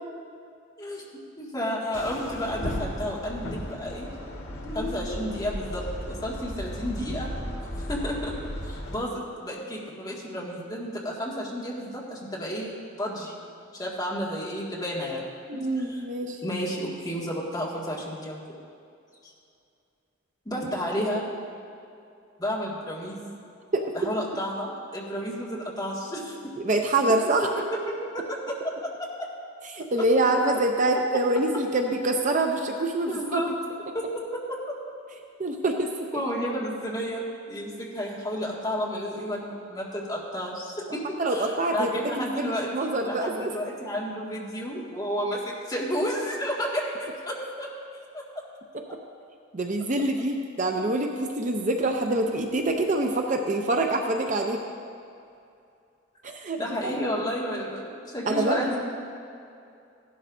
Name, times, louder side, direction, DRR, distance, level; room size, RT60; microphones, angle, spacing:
voice 1, 1.4-4.1 4.7-7.3 7.8-8.3 8.6-13.4 13.7-15.3 15.5-16.0 16.4-18.6 19.2-19.3 20.5-21.3 22.4-23.3 23.9-26.5 27.6-29.3 33.1-33.6 33.9-34.6 36.1-47.7 48.1-48.4 56.6-58.8, equal, 20° left, -5 dB, 2.0 m, -32 dB
sound 1, 1.9-9.0, equal, 80° left, 1.7 m, -35 dB
voice 2, 15.5-16.4 23.7-23.8 26.6-27.5 29.7-33.4 35.4-36.1 41.2-41.9 42.2-43.5 49.5-54.6 56.2-57.0 58.3-58.6, right 2 dB, 40° right, 3 dB, 0.6 m, -25 dB
16.0 x 11.5 x 2.7 m, 2.5 s
head